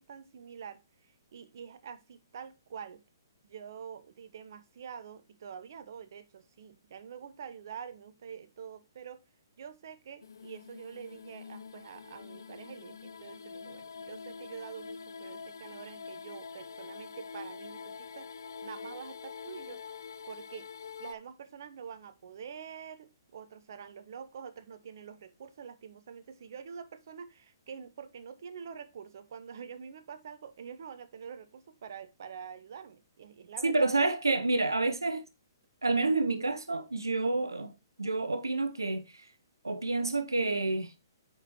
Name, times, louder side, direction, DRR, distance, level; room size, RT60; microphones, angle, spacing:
voice 1, 0.0-3.0 3.4-9.2 9.6-18.3 18.6-19.8 20.3-20.7 21.0-33.9, right 7 dB, 60° right, 0.9 m, -46 dB
sound 1, 10.2-21.2, left 5 dB, 70° left, 0.4 m, -45 dB
voice 2, 33.6-35.2 35.8-37.7 38.0-39.3 39.6-40.9, right 3 dB, 90° right, 0.6 m, -29 dB
8.8 x 4.6 x 2.9 m
figure-of-eight pair, 125°, 2 cm